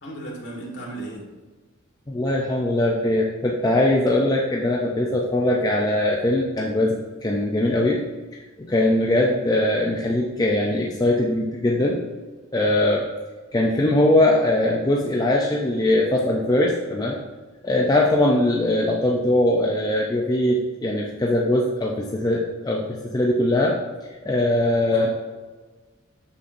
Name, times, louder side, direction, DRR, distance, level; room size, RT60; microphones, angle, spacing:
voice 1, 0.0-1.3 24.9-25.1, right 1 dB, 55° left, -2 dB, 1.6 m, -35 dB
voice 2, 2.1-8.0 8.6-12.0 12.5-13.1 13.5-17.2 17.6-23.8 24.2-25.1, left 1 dB, 20° left, -2 dB, 0.5 m, -21 dB
6.8 x 5.7 x 2.6 m, 1.3 s
head